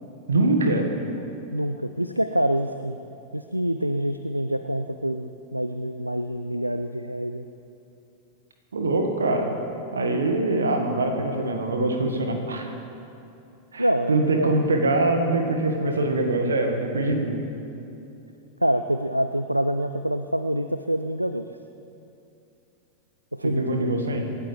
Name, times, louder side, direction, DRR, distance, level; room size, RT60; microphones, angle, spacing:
voice 1, 0.3-0.9 8.7-9.6 9.9-12.7 13.7-17.3 23.4-24.3, right 2 dB, 70° right, 4 dB, 1.8 m, -23 dB
voice 2, 1.5-3.0 3.3-7.5 13.8-14.6 18.6-21.5 23.4-23.9, equal, 90° right, 9 dB, 0.4 m, -26 dB
26.5 x 12.5 x 3.5 m, 2.7 s
figure-of-eight pair, 90°, 0 cm